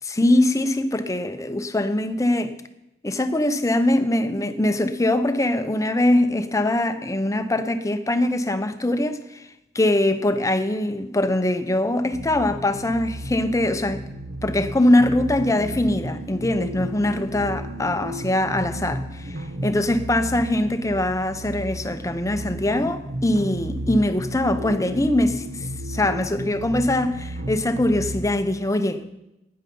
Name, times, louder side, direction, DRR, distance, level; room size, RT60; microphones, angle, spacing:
voice 1, 0.0-2.5 3.0-9.5 9.7-14.0 14.4-29.0, left 1 dB, 15° left, 0.8 m, -22 dB
sound 1, 12.1-28.2, right 1 dB, 55° right, 1.1 m, -33 dB
16.0 x 9.8 x 5.4 m
head